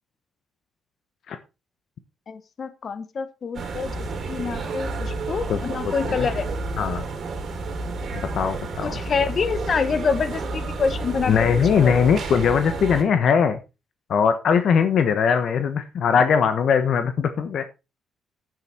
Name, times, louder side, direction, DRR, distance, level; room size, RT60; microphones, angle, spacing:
voice 1, 2.3-3.9 4.3-6.5 8.8-11.9, left 5 dB, 45° left, 13 dB, 1.4 m, -26 dB
sound 1, 3.5-13.0, right 3 dB, 55° right, 3.0 m, -30 dB
voice 2, 5.5-6.3 6.8-7.1 8.3-9.0 11.3-13.6 14.1-17.6, left 6 dB, 65° left, 9 dB, 1.2 m, -20 dB
9.2 x 8.9 x 4.4 m, 0.28 s
cardioid pair, 90°, 0 cm